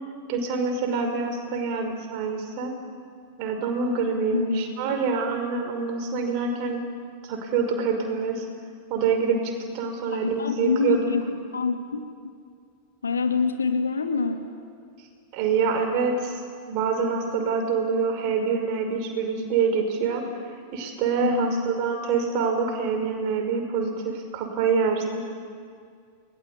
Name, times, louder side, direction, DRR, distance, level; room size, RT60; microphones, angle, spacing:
voice 1, 0.3-2.7 3.4-6.8 7.2-8.5 8.9-11.0 15.3-20.2 20.7-25.2, right 5 dB, 45° right, 4 dB, 5.6 m, -26 dB
voice 2, 4.3-4.7 10.1-11.2 11.5-12.3 13.0-14.5 21.2-21.7, left 4 dB, 75° left, 5 dB, 2.6 m, -26 dB
29.5 x 21.5 x 8.6 m, 2.2 s
figure-of-eight pair, 90°, 0 cm